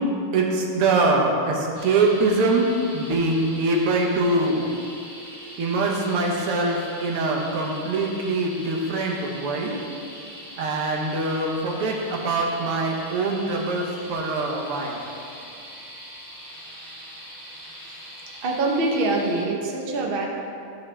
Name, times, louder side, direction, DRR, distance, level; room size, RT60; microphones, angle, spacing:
voice 1, 0.3-4.7 5.6-9.8 10.6-15.0, right 2 dB, 85° right, -1 dB, 2.0 m, -23 dB
sound 1, 1.7-19.4, equal, 10° left, 1.1 m, -42 dB
voice 2, 18.4-20.3, right 2 dB, 65° right, -1 dB, 0.5 m, -24 dB
14.0 x 4.8 x 3.3 m, 2.5 s
omnidirectional pair, 2.4 m